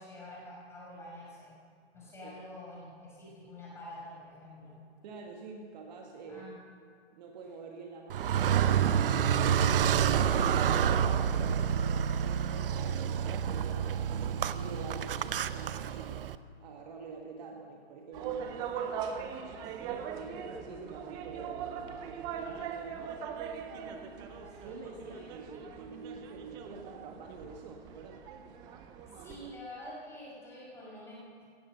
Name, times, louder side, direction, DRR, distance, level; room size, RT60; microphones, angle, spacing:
voice 1, 0.0-1.5 1.9-4.8 6.3-6.6 18.9-20.0 23.6-25.2 25.6-26.0 29.1-31.5, left 1 dB, 10° left, -6 dB, 5.6 m, -48 dB
voice 2, 5.0-6.6 7.2-10.0 10.2-16.3 16.6-18.5 20.2-23.3 24.5-28.3, right 4 dB, 40° right, 2 dB, 1.7 m, -47 dB
Car, 8.1-16.4, right 8 dB, 60° right, 0.7 m, -28 dB
sound 1, 18.1-29.6, right 7 dB, 15° right, 0.5 m, -41 dB
17.0 x 11.5 x 6.7 m, 2.1 s
hypercardioid pair, 150°, 32 cm